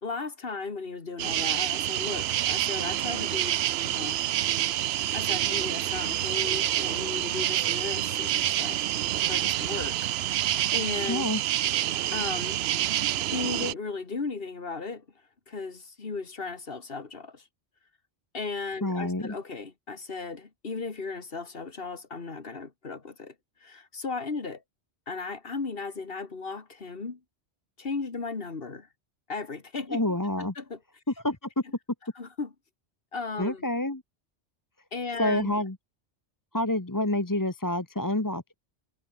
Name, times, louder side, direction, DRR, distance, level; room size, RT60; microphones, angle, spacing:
voice 1, 0.0-3.6 3.8-4.2 5.1-8.8 9.3-11.3 12.1-12.6 13.3-15.1 15.5-17.4 18.3-23.3 23.6-24.6 25.1-27.2 27.8-28.9 29.3-30.0 30.4-30.8 32.2-32.5 33.1-33.7 34.9-35.5, left 4 dB, 55° left, 2.2 m, -36 dB
sound 1, 1.2-13.7, right 12 dB, 70° right, 0.8 m, -27 dB
voice 2, 11.1-11.4 18.8-19.3 29.9-30.5 31.2-31.5 33.4-34.0 35.2-35.8 36.5-38.5, left 1 dB, 20° left, 1.4 m, -28 dB
omnidirectional pair, 1.1 m